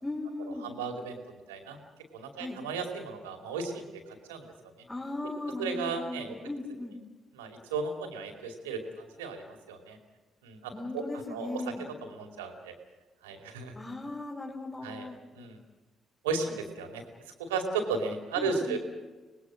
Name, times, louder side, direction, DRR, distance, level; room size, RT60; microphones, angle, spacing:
voice 1, 0.0-0.7 2.4-2.6 4.9-7.0 10.7-11.9 13.8-15.2 18.4-18.8, left 2 dB, 20° left, -2 dB, 3.8 m, -37 dB
voice 2, 0.6-1.8 2.1-4.5 5.6-6.4 7.4-10.0 10.4-11.0 11.3-11.7 12.0-12.8 13.2-13.7 14.8-15.1 15.3-15.6 16.2-17.0 17.4-18.8, right 4 dB, 90° right, 4 dB, 2.6 m, -35 dB
25.5 x 19.0 x 6.3 m, 1.3 s
hypercardioid pair, 45°, 0 cm